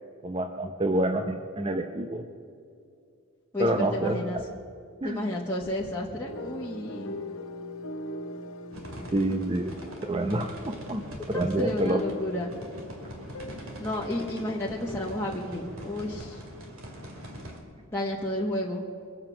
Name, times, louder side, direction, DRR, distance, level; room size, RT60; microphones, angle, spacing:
voice 1, 0.2-2.2 3.6-4.2 5.0-5.3 9.1-9.7 10.0-12.0, right 1 dB, 25° right, 5 dB, 0.7 m, -27 dB
voice 2, 3.5-4.4 5.0-7.2 11.3-12.5 13.8-16.4 17.9-18.8, left 1 dB, 10° left, -5 dB, 1.3 m, -31 dB
sound 1, 6.3-15.4, left 1 dB, 90° left, 1.3 m, -41 dB
sound 2, 8.7-17.6, equal, 70° right, 2.3 m, -42 dB
23.0 x 7.7 x 6.0 m, 2.3 s
head